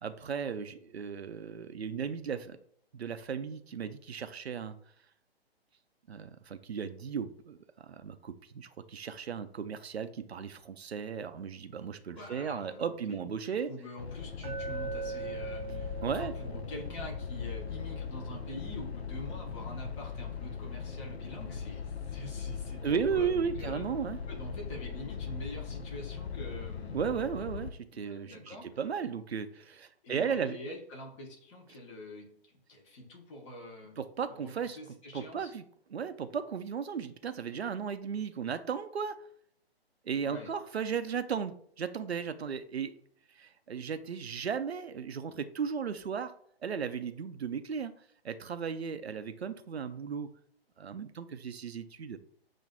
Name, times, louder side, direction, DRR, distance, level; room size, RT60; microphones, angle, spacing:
voice 1, 0.0-2.6 2.9-4.8 6.1-13.7 16.0-16.3 22.8-24.2 26.9-30.6 34.0-34.8 35.1-35.6 35.9-39.2 40.1-42.9 43.4-46.3 46.6-47.9 48.2-50.3 50.8-52.2, right 6 dB, 85° right, 11 dB, 0.5 m, -35 dB
voice 2, 12.1-23.8 24.3-27.0 27.9-28.7 30.0-34.0 34.3-35.5 40.2-40.5, left 1 dB, 30° left, 0 dB, 1.0 m, -45 dB
sound 1, 14.0-27.7, left 6 dB, 80° left, 0.6 m, -39 dB
Glass, 14.4-18.6, right 6 dB, 25° right, 0.8 m, -42 dB
7.2 x 2.5 x 2.2 m, 0.63 s
figure-of-eight pair, 130°, 31 cm